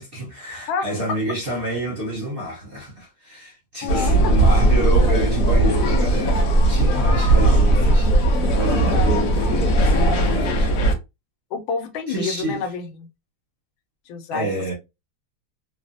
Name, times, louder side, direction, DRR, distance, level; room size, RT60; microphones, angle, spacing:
voice 1, 0.0-10.7 12.1-12.6 14.3-14.7, right 1 dB, 45° right, 0.7 m, -29 dB
voice 2, 3.8-4.1 7.3-7.7 8.9-9.2 10.6-10.7 11.5-13.1 14.1-14.5, left 5 dB, 85° left, 1.4 m, -28 dB
sound 1, 3.9-10.9, right 1 dB, 65° left, 0.9 m, -18 dB
3.2 x 2.0 x 2.5 m
omnidirectional pair, 2.1 m